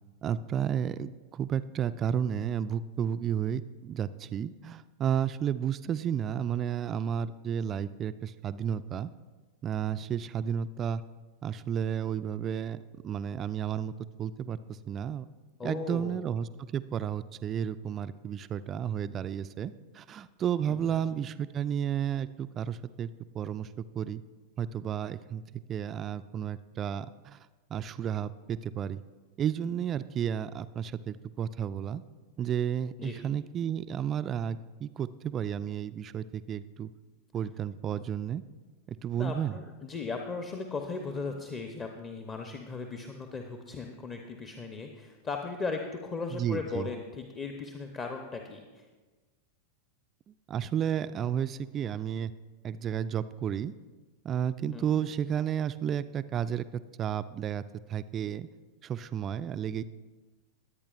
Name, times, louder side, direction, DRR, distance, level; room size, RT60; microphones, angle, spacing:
voice 1, 0.2-9.1 9.6-11.0 11.4-13.9 14.2-14.6 14.9-15.3 15.6-23.1 23.3-23.7 24.0-24.2 24.6-27.4 27.7-29.0 29.4-32.0 32.4-36.9 37.3-38.4 38.9-39.5 46.3-46.9 50.5-52.3 52.6-53.7 54.2-56.7 57.0-57.6 57.9-58.5 58.8-59.8, right 9 dB, 30° right, 13 dB, 0.3 m, -32 dB
voice 2, 15.6-16.2 20.7-21.1 33.0-33.2 39.1-48.8 54.7-55.1, left 4 dB, 25° left, 4 dB, 0.8 m, -37 dB
22.0 x 8.6 x 2.5 m, 1.3 s
figure-of-eight pair, 90°, 0 cm